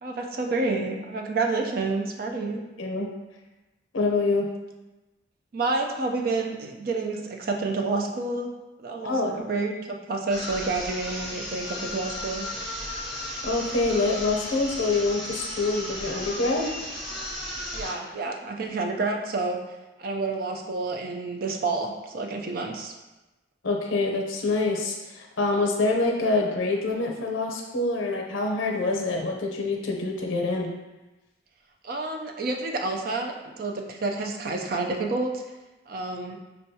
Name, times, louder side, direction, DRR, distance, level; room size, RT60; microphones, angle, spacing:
voice 1, 0.0-2.6 5.5-8.5 8.8-12.5 17.7-19.6 20.0-22.9 31.8-35.4 35.9-36.4, right 3 dB, 50° right, 2 dB, 0.4 m, -29 dB
voice 2, 2.8-3.1 3.9-4.5 9.0-9.4 13.4-16.7 23.6-30.7, left 3 dB, 90° left, 1 dB, 0.6 m, -26 dB
sound 1, 10.3-18.1, left 1 dB, ahead, 0.9 m, -35 dB
5.3 x 2.3 x 2.7 m, 1.1 s
head